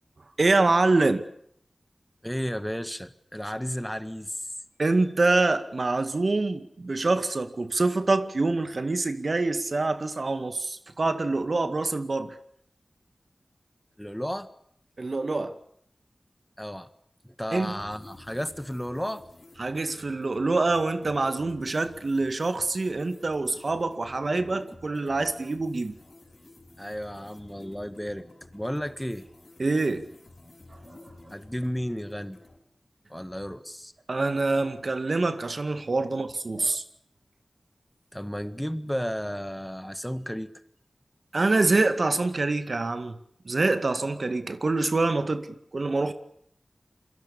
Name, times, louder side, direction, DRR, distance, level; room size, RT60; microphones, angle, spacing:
voice 1, 0.4-1.2 4.8-12.4 15.0-15.6 17.5-17.7 19.6-26.0 29.6-30.0 34.1-36.8 41.3-43.2 43.5-45.5 45.7-46.1, right 3 dB, 65° right, 2.0 m, -25 dB
voice 2, 2.2-4.5 14.0-14.5 16.6-16.9 17.2-19.2 26.8-28.3 28.5-29.3 31.3-32.4 33.1-33.9 38.1-40.5, equal, 5° left, 1.7 m, -33 dB
sound 1, 17.8-32.6, left 2 dB, 45° left, 5.7 m, -51 dB
28.5 x 23.0 x 7.1 m
wide cardioid pair, 60°, 0 cm